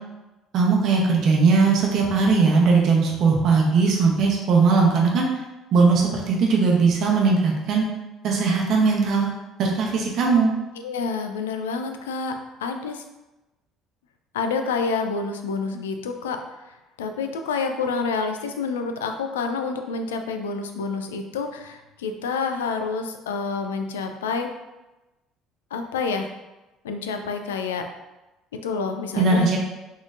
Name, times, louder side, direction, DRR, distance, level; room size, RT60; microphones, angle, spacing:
voice 1, 0.5-5.3 5.7-7.8 8.2-9.3 9.6-10.5 29.2-29.6, right 4 dB, 55° right, -1 dB, 0.8 m, -19 dB
voice 2, 10.8-12.3 12.6-13.0 14.3-24.5 25.7-26.3 26.8-27.8 28.6-29.6, left 4 dB, 80° left, 6 dB, 0.3 m, -28 dB
4.0 x 3.0 x 2.5 m, 1.0 s
figure-of-eight pair, 55°, 0 cm